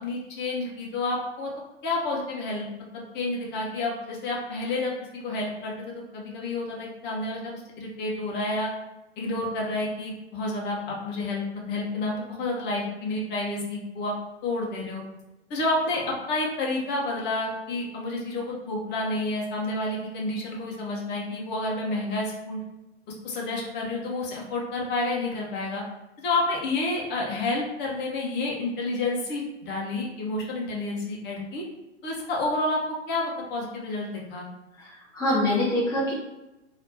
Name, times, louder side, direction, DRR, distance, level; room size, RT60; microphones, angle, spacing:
voice 1, 0.0-1.5 1.8-2.7 3.1-4.9 5.2-8.7 9.2-14.1 14.4-15.0 15.5-22.6 23.1-25.8 26.2-31.6 32.0-32.8 33.1-34.5, left 2 dB, 30° left, -2 dB, 1.3 m, -29 dB
voice 2, 34.8-36.1, left 1 dB, 10° left, -7 dB, 1.0 m, -25 dB
4.0 x 3.0 x 4.3 m, 0.98 s
hypercardioid pair, 115°, 36 cm